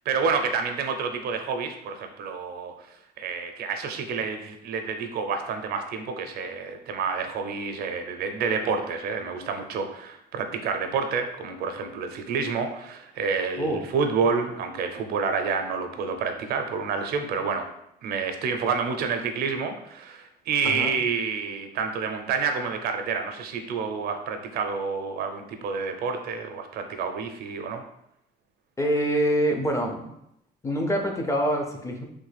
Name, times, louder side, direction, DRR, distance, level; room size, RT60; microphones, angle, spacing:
voice 1, 0.1-2.7 3.2-17.7 18.0-27.8, right 5 dB, 65° right, 6 dB, 0.4 m, -29 dB
voice 2, 28.8-30.1 30.6-32.0, equal, 15° left, 3 dB, 0.4 m, -25 dB
3.1 x 2.1 x 3.2 m, 0.80 s
cardioid pair, 110°, 17 cm